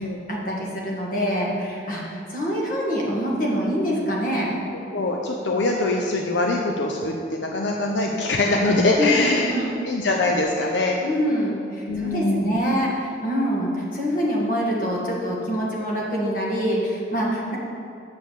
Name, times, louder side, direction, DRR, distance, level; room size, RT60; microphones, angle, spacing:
voice 1, 0.0-4.5 9.0-9.8 11.0-17.6, equal, 45° left, -3 dB, 1.7 m, -25 dB
voice 2, 4.9-9.5 9.8-11.0 11.9-12.5, left 2 dB, 80° left, 0 dB, 0.7 m, -23 dB
7.0 x 6.3 x 6.5 m, 2.6 s
head